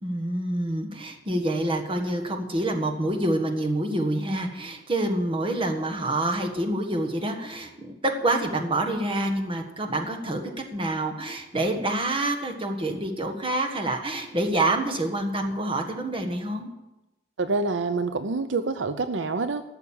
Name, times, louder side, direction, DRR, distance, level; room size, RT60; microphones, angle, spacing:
voice 1, 0.0-10.4 10.7-16.7, right 1 dB, 30° right, 4 dB, 1.5 m, -27 dB
voice 2, 17.4-19.6, right 3 dB, 75° right, 10 dB, 0.6 m, -27 dB
13.0 x 6.6 x 8.7 m, 0.99 s
head